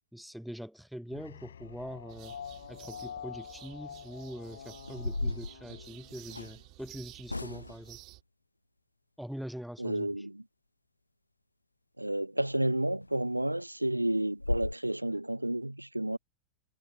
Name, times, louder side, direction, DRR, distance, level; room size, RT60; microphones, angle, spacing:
voice 1, 0.1-2.4 2.7-8.0 9.2-10.1, equal, ahead, 0.6 m, -43 dB
sound 1, 1.1-6.6, left 8 dB, 65° left, 3.1 m, -47 dB
sound 2, 2.1-8.2, right 21 dB, 40° right, 2.3 m, -53 dB
sound 3, 4.0-4.3 4.8-6.6 7.3-7.9 12.5-12.6 13.0-13.1 13.5-13.6 14.0-14.1 14.4-14.7, left 2 dB, 85° left, 0.5 m, -36 dB
voice 2, 9.8-10.4 12.0-16.2, right 1 dB, 85° right, 0.4 m, -31 dB
figure-of-eight pair, 90°, 0 cm